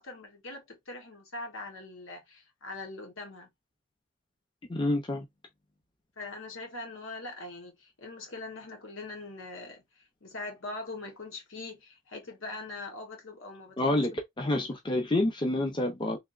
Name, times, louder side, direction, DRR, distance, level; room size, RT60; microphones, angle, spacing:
voice 1, 0.0-3.5 6.2-14.0, left 2 dB, 75° left, 1.2 m, -42 dB
voice 2, 4.7-5.3 13.8-16.2, left 1 dB, 25° left, 0.6 m, -28 dB
3.4 x 2.7 x 2.4 m
head